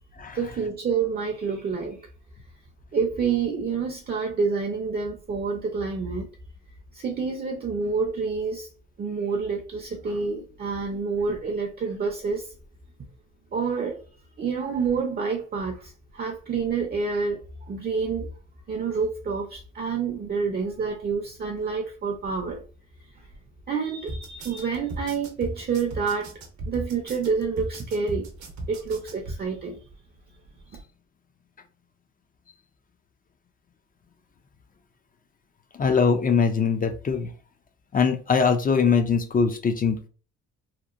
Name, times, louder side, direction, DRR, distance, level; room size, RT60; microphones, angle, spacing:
voice 1, 0.3-2.0 2.9-6.3 6.9-8.7 9.0-12.5 13.5-14.0 14.4-18.3 18.7-22.6 23.7-26.3 26.7-28.3 28.7-29.8, right 5 dB, 35° right, 0.5 m, -28 dB
sound 1, 24.1-29.4, right 1 dB, 65° right, 0.8 m, -36 dB
voice 2, 35.8-37.3 37.9-40.1, left 5 dB, 30° left, 0.4 m, -22 dB
2.9 x 2.0 x 2.4 m
cardioid pair, 90°, 30 cm